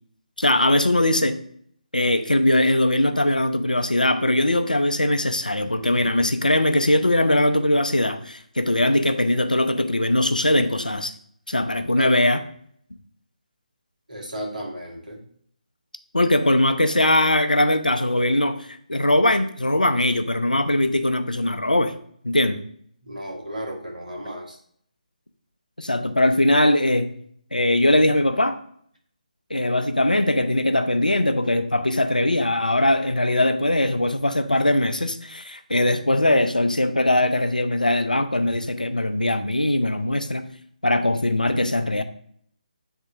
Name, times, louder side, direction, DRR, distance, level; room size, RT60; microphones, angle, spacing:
voice 1, 0.4-1.4 1.9-11.1 11.5-12.4 16.1-21.9 22.2-22.6 25.8-27.1 27.5-28.6 29.5-40.4 40.8-42.0, left 1 dB, 90° left, 9 dB, 0.6 m, -21 dB
voice 2, 14.1-15.2 23.0-24.6, right 1 dB, 75° right, -1 dB, 1.8 m, -34 dB
8.2 x 3.6 x 3.6 m, 0.64 s
figure-of-eight pair, 150°, 4 cm